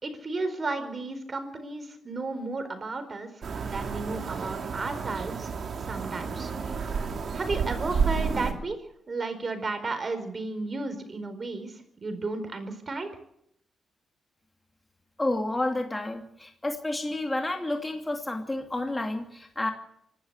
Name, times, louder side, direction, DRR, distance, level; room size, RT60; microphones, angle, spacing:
voice 1, 0.0-3.3 3.6-5.5 5.8-6.5 7.3-8.8 9.1-13.1, right 3 dB, 40° right, 9 dB, 4.5 m, -33 dB
sound 1, 3.4-8.5, right 5 dB, 60° right, 2.7 m, -31 dB
voice 2, 15.2-19.7, left 2 dB, 15° left, 4 dB, 2.5 m, -30 dB
25.5 x 12.5 x 8.3 m, 0.75 s
cardioid pair, 85°, 0 cm